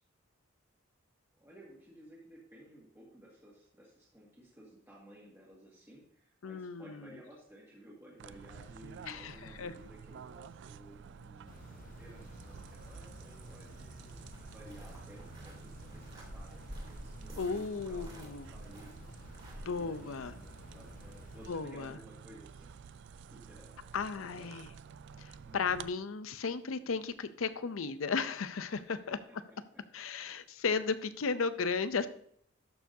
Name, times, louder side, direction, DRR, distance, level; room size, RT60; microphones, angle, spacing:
voice 1, 1.4-14.2 14.4-19.3 19.6-22.8 23.3-23.8 24.2-24.5 25.4-25.8 28.6-29.4 29.7-29.8, equal, 10° right, -5 dB, 1.9 m, -56 dB
voice 2, 6.4-7.1 9.1-9.7 17.4-18.5 19.7-20.4 21.5-22.0 23.9-24.7 25.2-29.2 29.9-32.1, left 5 dB, 80° left, 13 dB, 0.6 m, -35 dB
sound 1, 8.2-25.9, right 6 dB, 60° right, 0.3 m, -51 dB
sound 2, 11.5-21.5, left 2 dB, 40° left, 0.7 m, -53 dB
sound 3, 14.2-19.6, equal, 30° right, 2.6 m, -50 dB
12.0 x 6.9 x 2.7 m, 0.66 s
head